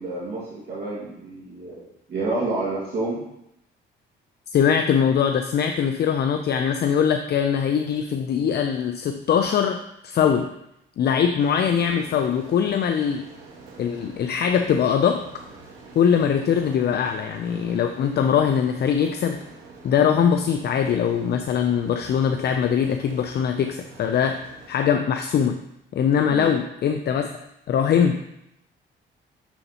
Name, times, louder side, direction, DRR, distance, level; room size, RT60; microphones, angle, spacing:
voice 1, 0.0-1.8 2.1-3.2 26.3-26.5, right 2 dB, 60° right, -8 dB, 2.0 m, -29 dB
voice 2, 4.5-10.5 11.0-13.3 13.8-15.2 15.9-19.4 19.8-24.4 24.7-25.6 25.9-27.3 27.7-28.2, left 7 dB, 55° left, 6 dB, 0.5 m, -22 dB
sound 1, 11.4-24.7, right 3 dB, 90° right, 1.6 m, -46 dB
7.0 x 6.7 x 2.9 m, 0.81 s
cardioid pair, 90°, 20 cm